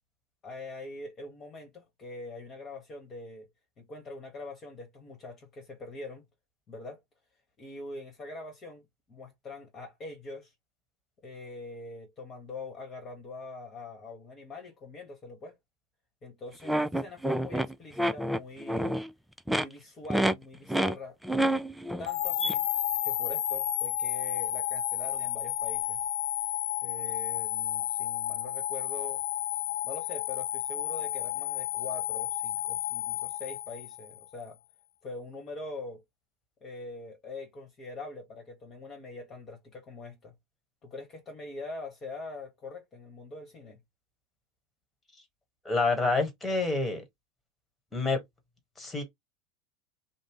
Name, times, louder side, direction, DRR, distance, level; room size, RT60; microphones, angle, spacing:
voice 1, 0.4-3.5 3.8-6.3 6.7-7.0 7.6-10.5 11.2-15.6 16.2-18.9 19.5-21.2 22.0-22.7 23.0-26.0 26.8-29.2 29.8-34.6 35.0-36.0 36.6-40.3 40.8-43.8, left 2 dB, 35° left, 1.0 m, -43 dB
sound 1, 16.7-19.1 19.4-19.6 20.1-20.3 20.7-21.0 21.2-22.1 22.4-22.5, right 1 dB, 5° right, 0.3 m, -28 dB
sound 2, 22.1-34.2, left 12 dB, 70° left, 0.4 m, -32 dB
voice 2, 45.6-47.0 47.9-48.2 48.8-49.0, left 3 dB, 15° left, 1.4 m, -27 dB
2.5 x 2.0 x 3.6 m
hypercardioid pair, 90°, 0 cm